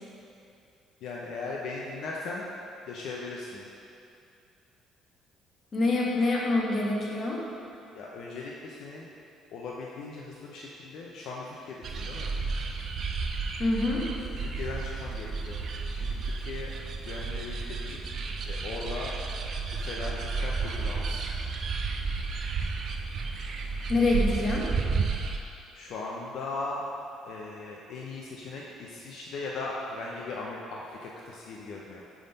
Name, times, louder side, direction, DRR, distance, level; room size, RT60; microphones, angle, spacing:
voice 1, 1.0-2.5 2.9-3.7 7.9-9.1 9.5-12.3 14.4-15.6 15.9-16.7 17.0-18.0 18.5-19.1 19.7-21.2 25.7-26.9 27.3-32.0, left 3 dB, 70° left, -3 dB, 0.5 m, -38 dB
voice 2, 5.7-7.4 13.6-14.0 23.9-24.6, left 2 dB, 40° left, -3 dB, 1.1 m, -25 dB
sound 1, 11.8-25.4, right 4 dB, 55° right, 0.5 m, -32 dB
5.4 x 3.5 x 5.2 m, 2.6 s
cardioid pair, 95°, 0 cm